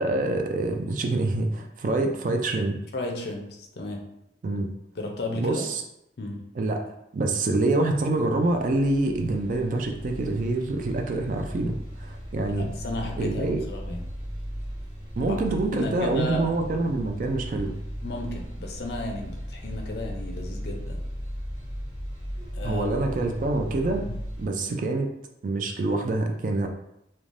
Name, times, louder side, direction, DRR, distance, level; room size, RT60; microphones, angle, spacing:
voice 1, 0.0-2.8 4.4-4.7 5.3-5.8 6.6-6.8 7.1-12.7 13.2-13.6 15.2-17.7 22.4-24.1 24.4-25.1 25.4-26.7, right 2 dB, 45° right, 4 dB, 0.3 m, -26 dB
voice 2, 2.9-4.0 5.0-5.7 6.2-6.4 12.6-14.1 15.3-15.4 15.7-16.5 18.0-21.0 22.5-23.2 24.1-24.2 24.7-24.8, left 2 dB, 60° left, 2 dB, 0.5 m, -33 dB
sound 1, 8.2-24.5, equal, 10° right, 1.1 m, -37 dB
3.1 x 2.2 x 2.5 m, 0.80 s
head